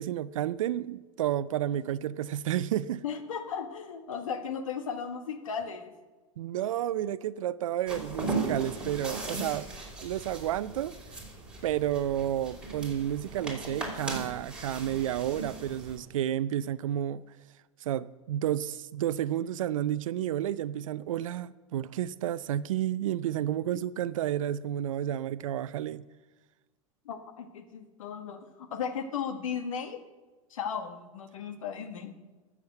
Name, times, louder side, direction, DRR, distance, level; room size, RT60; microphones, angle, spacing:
voice 1, 0.0-3.0 6.4-9.7 10.0-10.9 11.6-17.2 17.8-26.0, right 11 dB, 70° right, 0.5 m, -31 dB
voice 2, 3.0-5.9 27.0-30.0 30.5-32.1, left 7 dB, 75° left, 1.5 m, -36 dB
sound 1, 7.9-16.0, right 3 dB, 5° right, 4.9 m, -37 dB
12.5 x 7.4 x 7.7 m
hypercardioid pair, 90°, 17 cm